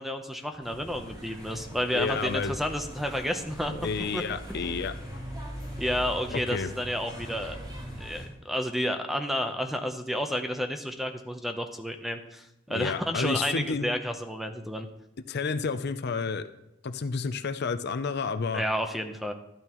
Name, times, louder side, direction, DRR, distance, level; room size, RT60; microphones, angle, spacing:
voice 1, 0.0-3.7 4.1-4.2 4.5-4.6 5.8-7.6 8.0-14.9 18.5-19.3, equal, ahead, 6 dB, 0.8 m, -31 dB
sound 1, 0.6-8.3, equal, 20° right, 4.4 m, -40 dB
voice 2, 1.9-2.5 3.8-4.9 6.3-6.7 12.7-13.9 15.3-16.5 16.8-18.6, left 4 dB, 55° left, 10 dB, 0.5 m, -30 dB
12.0 x 12.0 x 3.0 m, 0.84 s
head